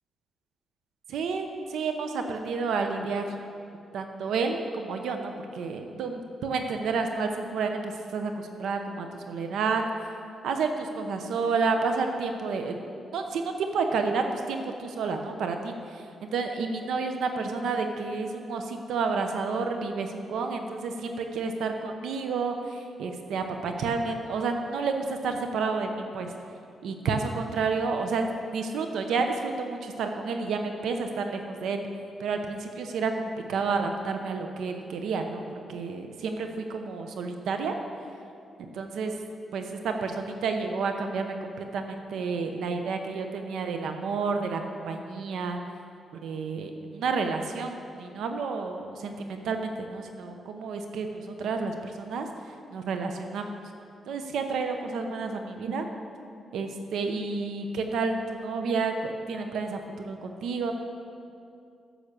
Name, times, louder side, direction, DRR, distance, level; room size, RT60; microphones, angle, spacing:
voice 1, 1.1-3.3 3.9-9.8 10.4-12.8 13.1-26.3 26.8-31.8 32.2-37.7 38.6-39.1 39.5-45.6 46.1-52.3 52.7-53.6 54.1-55.8 56.5-60.7, right 4 dB, 85° right, 5 dB, 0.8 m, -30 dB
10.0 x 7.3 x 6.6 m, 2.5 s
cardioid pair, 135°, 0 cm